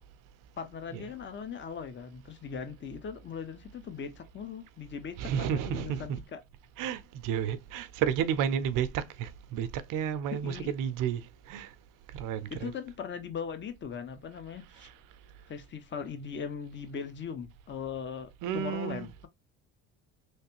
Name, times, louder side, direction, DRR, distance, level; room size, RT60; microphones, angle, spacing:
voice 1, 0.6-6.4 10.3-10.7 12.5-14.9 15.5-19.3, left 7 dB, 35° left, 0.8 m, -39 dB
voice 2, 5.2-6.2 6.8-11.2 11.5-11.7 12.1-12.7 18.4-19.1, right 8 dB, 70° right, 0.6 m, -31 dB
3.3 x 3.2 x 2.9 m
supercardioid pair, 95°, 34 cm